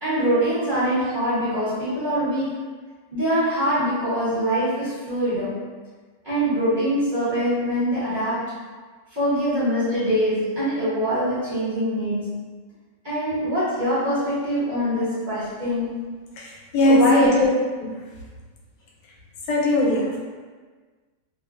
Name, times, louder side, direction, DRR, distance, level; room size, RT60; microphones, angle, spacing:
voice 1, 0.0-2.6 3.1-5.6 6.2-8.5 9.1-12.5 13.0-15.9 16.8-17.4, equal, 35° right, -14 dB, 0.8 m, -23 dB
voice 2, 16.4-17.5 17.8-18.0 19.5-20.2, left 2 dB, 80° left, -4 dB, 1.2 m, -20 dB
2.9 x 2.2 x 2.3 m, 1.4 s
omnidirectional pair, 1.9 m